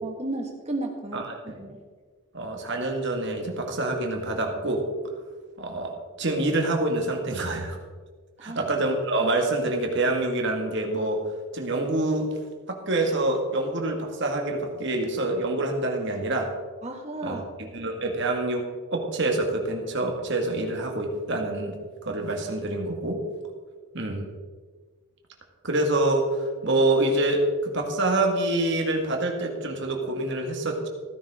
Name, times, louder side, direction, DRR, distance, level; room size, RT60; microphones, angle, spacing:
voice 1, 0.0-1.8 8.4-8.6 16.8-17.4, right 2 dB, 30° right, 2 dB, 1.7 m, -34 dB
voice 2, 2.3-4.8 5.6-7.8 8.4-11.2 11.5-12.3 12.7-16.5 17.2-17.4 17.7-18.6 18.9-21.8 22.0-23.2 23.9-24.3 25.6-30.9, right 2 dB, 55° right, 2 dB, 2.0 m, -26 dB
16.0 x 10.5 x 3.7 m, 1.5 s
head